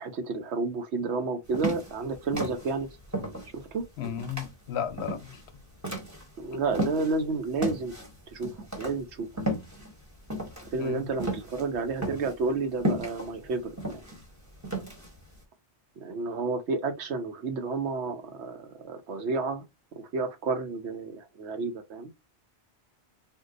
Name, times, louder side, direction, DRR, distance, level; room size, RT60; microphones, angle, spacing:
voice 1, 0.0-2.9 3.5-3.9 6.4-7.9 8.3-8.5 8.8-9.3 10.7-14.0 16.0-19.6 20.1-22.1, right 3 dB, 80° right, 1.0 m, -31 dB
sound 1, 1.5-7.2 7.6-15.3, right 1 dB, 15° right, 1.0 m, -34 dB
voice 2, 4.0-5.4 10.8-11.1, left 8 dB, 70° left, 0.8 m, -34 dB
2.7 x 2.2 x 3.7 m
omnidirectional pair, 1.1 m